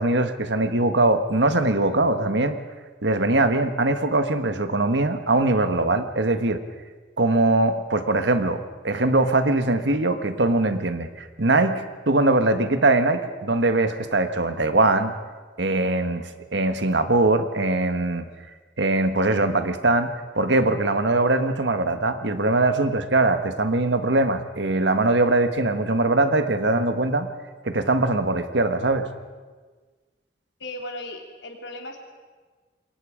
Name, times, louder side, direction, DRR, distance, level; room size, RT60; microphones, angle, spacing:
voice 1, 0.0-2.6 3.0-6.6 7.2-15.1 15.6-16.2 16.5-18.3 18.8-20.1 20.3-27.3 27.6-29.1, right 2 dB, 85° right, 9 dB, 1.5 m, -21 dB
voice 2, 30.6-32.0, left 1 dB, 85° left, 2 dB, 3.4 m, -36 dB
27.5 x 22.5 x 5.1 m, 1.4 s
head